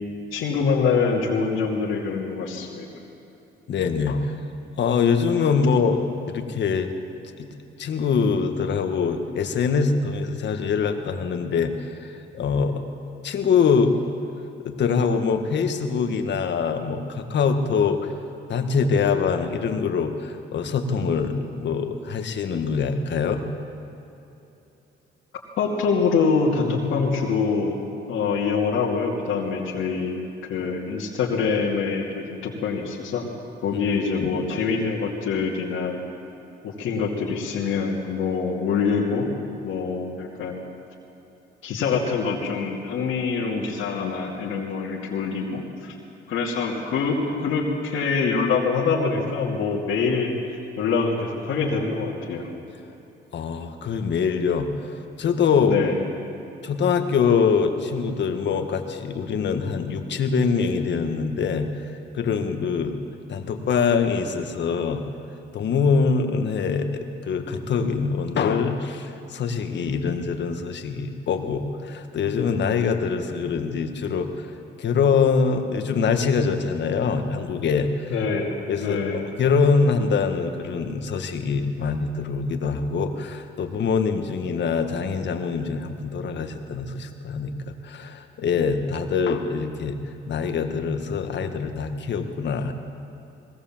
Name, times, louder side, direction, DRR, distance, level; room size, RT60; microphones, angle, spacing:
voice 1, 0.3-2.9 25.6-27.8 28.1-30.2 30.5-33.3 33.6-36.0 36.6-39.3 39.6-40.6 41.6-45.9 46.3-50.3 50.8-52.4 55.6-56.0 78.1-78.5 78.8-79.2, left 5 dB, 85° left, -2 dB, 2.5 m, -25 dB
voice 2, 3.7-4.4 4.8-6.9 7.4-7.5 7.8-12.8 13.2-13.9 14.6-18.0 18.5-23.4 34.2-34.3 53.3-54.7 55.2-55.8 56.6-61.7 62.1-63.0 63.3-65.0 65.5-74.5 74.8-78.1 78.7-79.0 79.4-90.0 90.3-92.7, left 5 dB, 65° left, 6 dB, 1.8 m, -24 dB
20.0 x 17.5 x 7.4 m, 3.0 s
cardioid pair, 90°, 20 cm